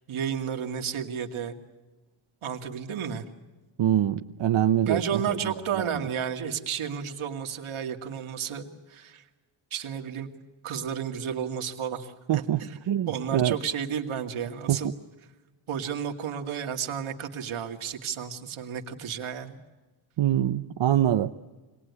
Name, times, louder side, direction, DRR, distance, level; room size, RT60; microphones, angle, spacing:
voice 1, 0.1-1.6 2.4-3.3 4.8-9.2 9.7-10.3 10.6-12.8 13.1-14.9 15.7-19.6, right 8 dB, 80° right, 4 dB, 2.4 m, -32 dB
voice 2, 3.8-5.0 5.3-5.4 5.8-5.9 12.3-12.6 12.9-13.6 14.7-14.8 20.2-21.3, right 11 dB, 65° right, 7 dB, 0.8 m, -24 dB
26.0 x 20.0 x 9.7 m, 1.2 s
wide cardioid pair, 180°, 48 cm